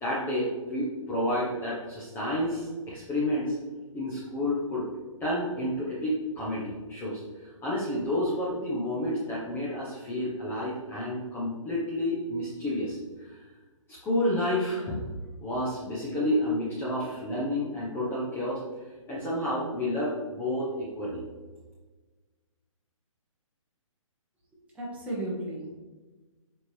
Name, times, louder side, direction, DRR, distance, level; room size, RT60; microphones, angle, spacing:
voice 1, 0.0-3.6 3.9-4.8 5.2-7.2 7.6-13.4 13.9-15.0 15.4-18.6 19.1-21.2, left 1 dB, 10° left, -7 dB, 1.0 m, -30 dB
voice 2, 24.7-25.8, right 1 dB, 5° right, -5 dB, 1.5 m, -34 dB
7.0 x 4.6 x 3.4 m, 1.3 s
hypercardioid pair, 150°, 17 cm